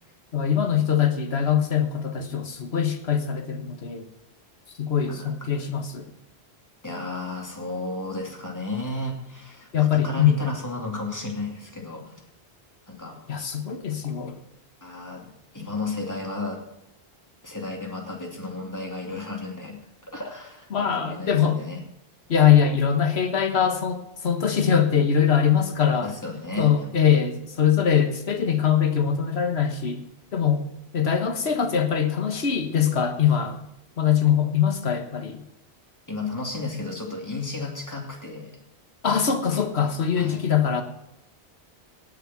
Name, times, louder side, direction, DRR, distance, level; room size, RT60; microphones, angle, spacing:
voice 1, 0.3-4.1 4.8-6.1 9.7-10.4 13.3-14.4 20.7-21.6 22.3-26.1 26.6-30.0 30.3-30.6 30.9-33.6 34.0-35.4 39.0-40.8, left 8 dB, 75° left, 7 dB, 1.6 m, -22 dB
voice 2, 6.8-12.2 12.9-13.2 14.8-16.6 17.4-19.8 20.0-21.8 26.0-26.9 36.1-38.5 40.2-40.4, left 3 dB, 15° left, 0 dB, 2.6 m, -33 dB
18.0 x 6.7 x 6.0 m, 0.88 s
omnidirectional pair, 1.1 m